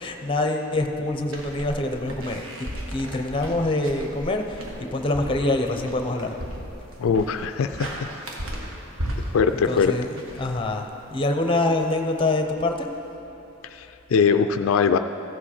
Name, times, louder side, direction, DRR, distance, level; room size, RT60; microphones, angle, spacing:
voice 1, 0.0-2.4 2.9-4.6 4.9-6.3 9.5-12.9, left 2 dB, 25° left, 5 dB, 0.7 m, -25 dB
sound 1, 1.3-11.1, equal, 80° right, 1.4 m, -35 dB
voice 2, 7.0-7.9 9.3-9.9 13.6-15.0, left 6 dB, 80° left, 8 dB, 0.4 m, -21 dB
15.0 x 7.3 x 4.3 m, 2.9 s
head